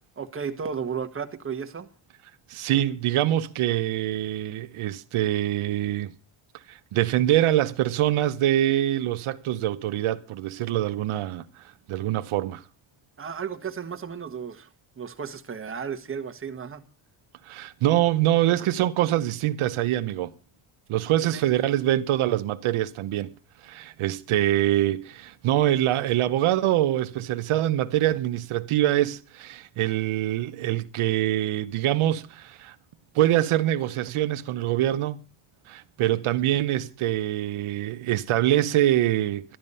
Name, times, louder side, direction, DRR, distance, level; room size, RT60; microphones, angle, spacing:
voice 1, 0.2-1.9 13.2-14.7 15.0-16.8 21.3-21.5, right 6 dB, 25° right, 1.3 m, -34 dB
voice 2, 2.5-6.1 6.7-12.6 17.4-20.3 20.9-23.3 23.6-32.8 33.1-35.2 35.7-39.4, right 13 dB, 75° right, 0.9 m, -24 dB
12.5 x 11.5 x 5.5 m
cardioid pair, 130°, 50 cm